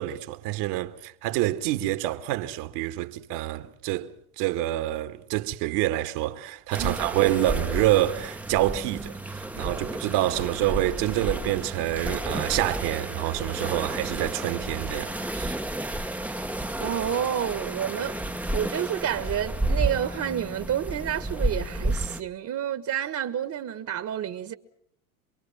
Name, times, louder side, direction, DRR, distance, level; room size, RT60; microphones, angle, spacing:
voice 1, 0.0-15.6, right 15 dB, 60° right, 2.0 m, -27 dB
sound 1, 6.7-22.2, right 1 dB, 5° right, 1.1 m, -31 dB
voice 2, 16.8-18.2 18.5-24.5, right 10 dB, 40° right, 1.7 m, -29 dB
27.0 x 23.0 x 7.4 m
hypercardioid pair, 95°, 45 cm